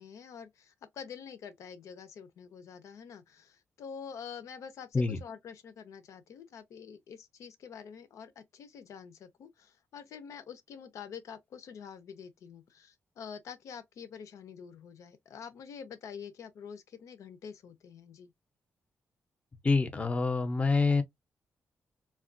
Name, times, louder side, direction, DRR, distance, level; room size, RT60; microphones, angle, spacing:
voice 1, 0.0-18.3, left 7 dB, 85° left, 0.7 m, -47 dB
voice 2, 19.6-21.0, left 4 dB, 25° left, 0.6 m, -26 dB
3.5 x 2.4 x 2.5 m
cardioid pair, 120°, 5 cm